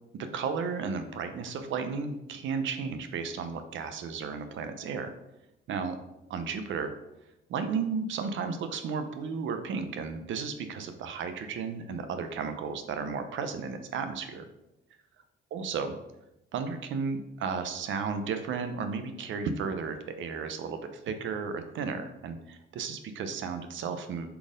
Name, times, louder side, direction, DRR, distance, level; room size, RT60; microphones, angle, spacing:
voice 1, 0.3-5.1 5.7-6.0 6.3-6.9 7.5-14.5 15.5-15.9 16.5-20.8 21.1-24.3, right 5 dB, 75° right, 8 dB, 0.8 m, -33 dB
5.6 x 4.2 x 5.1 m, 0.91 s
cardioid pair, 90°, 20 cm